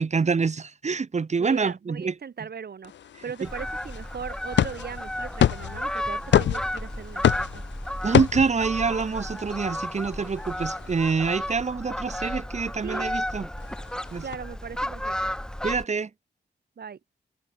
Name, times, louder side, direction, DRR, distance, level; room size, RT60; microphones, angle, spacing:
voice 1, 0.0-2.1 8.0-13.5 14.1-14.2 15.6-16.1, right 5 dB, 40° right, 0.8 m, -26 dB
voice 2, 1.4-7.6 12.8-13.1 14.2-15.3 16.8-17.0, right 6 dB, 60° right, 1.3 m, -39 dB
sound 1, 2.8-11.1 13.6-14.4, left 10 dB, 85° left, 0.7 m, -28 dB
Fowl, 3.4-15.9, left 1 dB, 5° left, 0.7 m, -33 dB
cardioid pair, 55°, 18 cm